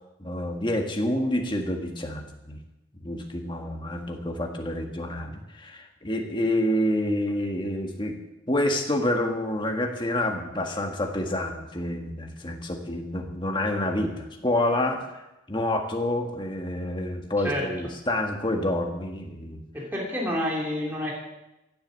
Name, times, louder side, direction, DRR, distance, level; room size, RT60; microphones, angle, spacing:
voice 1, 0.2-2.6 3.0-8.1 8.5-15.1 15.5-19.6, left 1 dB, 25° left, 2 dB, 1.7 m, -28 dB
voice 2, 19.7-21.1, equal, 10° right, -4 dB, 2.8 m, -28 dB
15.5 x 7.8 x 8.1 m, 0.97 s
head